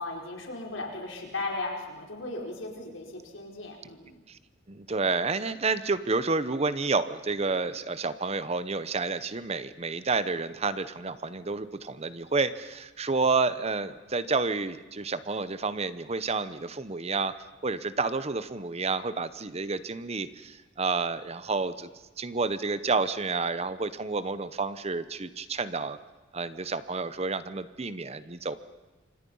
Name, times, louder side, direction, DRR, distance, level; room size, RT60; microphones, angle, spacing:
voice 1, 0.0-4.2, left 2 dB, 80° left, 0 dB, 4.7 m, -36 dB
voice 2, 4.7-17.3 17.6-21.9 22.2-26.0 26.3-28.6, right 4 dB, 30° right, 13 dB, 0.9 m, -30 dB
28.5 x 25.5 x 5.6 m, 1.2 s
head